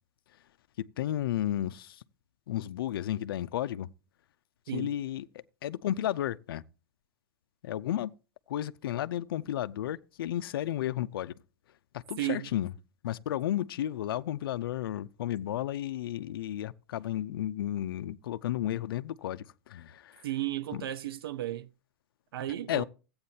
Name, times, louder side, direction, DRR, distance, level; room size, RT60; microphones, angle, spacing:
voice 1, 0.8-2.0 2.5-3.9 4.7-6.6 7.6-8.1 8.5-11.3 11.9-12.7 13.0-20.3 20.7-20.9 22.7-22.8, left 12 dB, 75° left, 0.6 m, -33 dB
voice 2, 12.2-12.5 20.2-21.7 22.3-22.8, right 14 dB, 85° right, 0.7 m, -34 dB
15.0 x 8.7 x 2.8 m
supercardioid pair, 175°, 12 cm